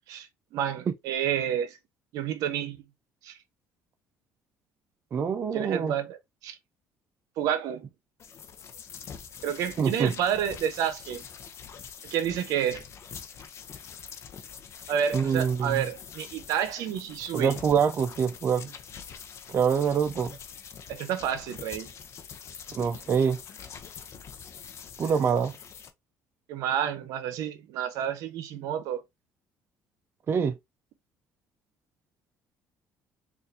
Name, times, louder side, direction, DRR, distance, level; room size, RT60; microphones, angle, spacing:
voice 1, 0.1-1.8 2.1-2.8 3.2-3.4 5.5-6.2 6.4-6.6 7.4-7.9 9.4-11.2 12.0-12.8 14.9-17.6 20.9-21.9 26.5-29.0, right 9 dB, 75° right, 0.7 m, -30 dB
voice 2, 5.1-5.9 9.8-10.1 15.1-15.8 17.3-18.7 19.5-20.4 22.7-23.4 25.0-25.5 30.3-30.6, right 6 dB, 40° right, 0.4 m, -25 dB
sound 1, 8.2-25.9, left 7 dB, 50° left, 0.6 m, -45 dB
4.1 x 2.5 x 2.6 m
supercardioid pair, 85°, 6 cm